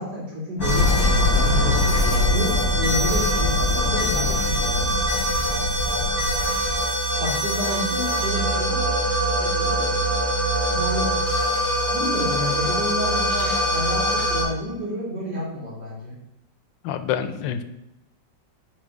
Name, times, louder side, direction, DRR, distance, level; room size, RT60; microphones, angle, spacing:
voice 1, 0.0-1.8 2.3-4.9 7.2-8.8 9.4-10.2 10.7-11.2 11.9-16.1, left 1 dB, 60° right, -6 dB, 3.5 m, -30 dB
sound 1, 0.6-6.8, left 3 dB, 50° left, 1.6 m, -24 dB
sound 2, 0.6-14.4, right 1 dB, 15° left, 2.7 m, -24 dB
voice 2, 16.8-17.6, left 9 dB, 80° left, 11 dB, 1.3 m, -27 dB
5.4 x 5.3 x 6.0 m, 0.88 s
omnidirectional pair, 2.1 m